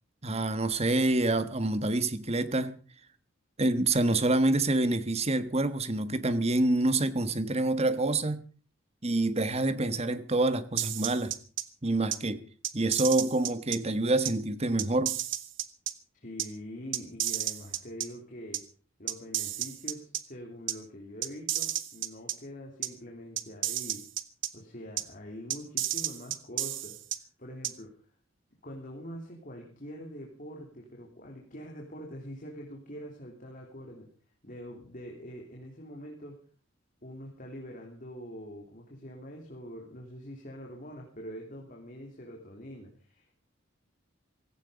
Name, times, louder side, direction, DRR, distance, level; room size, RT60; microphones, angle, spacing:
voice 1, 0.2-2.7 3.6-8.4 9.0-11.3 11.8-12.4 12.7-15.1, right 2 dB, 30° right, 1.4 m, -27 dB
sound 1, 10.8-11.6 12.1-12.2 12.6-13.8 14.2-14.3 14.8-15.9 16.4-16.5 16.9-18.1 18.5-18.6 19.1-20.2 20.7-20.8 21.2-22.3 22.8-22.9 23.4-24.5 25.0-25.1 25.5-27.2 27.6-27.7, right 13 dB, 70° right, 1.4 m, -31 dB
voice 2, 16.2-18.6 19.0-24.0 24.5-27.0 27.4-27.9 28.6-34.1 34.4-36.4 37.0-43.4, equal, 45° left, 3.4 m, -44 dB
16.5 x 16.0 x 5.2 m
head